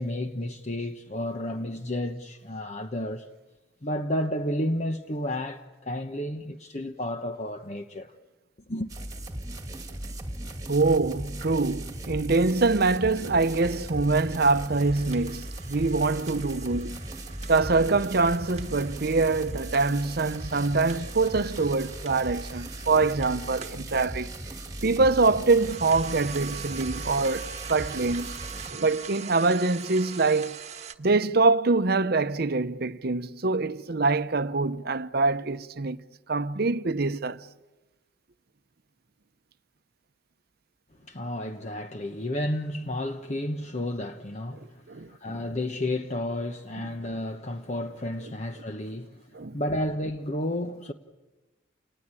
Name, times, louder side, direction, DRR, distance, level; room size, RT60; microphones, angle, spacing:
voice 1, 0.0-3.3 3.8-8.1 8.7-8.9 41.1-50.9, left 1 dB, 35° left, 1.1 m, -32 dB
sound 1, 8.9-28.7, right 1 dB, 20° right, 2.2 m, -38 dB
voice 2, 10.7-17.0 17.5-24.3 24.8-28.3 28.7-30.5 31.0-36.0 36.3-37.4 44.9-45.4 49.3-49.6, right 3 dB, 55° right, 0.8 m, -24 dB
sound 2, 14.7-23.8 25.4-31.0, right 6 dB, 35° right, 1.4 m, -43 dB
30.0 x 19.5 x 9.0 m
head